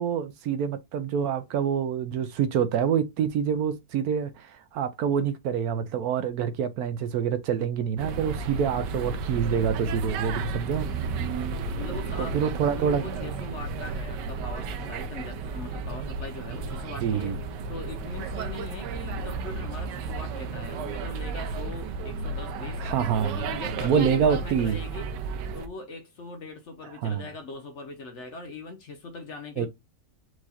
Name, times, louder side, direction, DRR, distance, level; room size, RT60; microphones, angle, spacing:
voice 1, 0.0-10.9 12.2-13.0 17.0-17.4 22.8-23.4 23.8-24.8 27.0-27.2 29.6-29.7, right 7 dB, 70° right, 1.0 m, -26 dB
sound 1, 8.0-25.7, right 4 dB, 90° right, 1.3 m, -33 dB
voice 2, 10.8-11.4 11.7-12.4 12.7-17.4 17.7-22.8 23.2-25.1 25.5-29.7, left 3 dB, 50° left, 1.0 m, -41 dB
4.7 x 2.4 x 4.2 m
omnidirectional pair, 1.8 m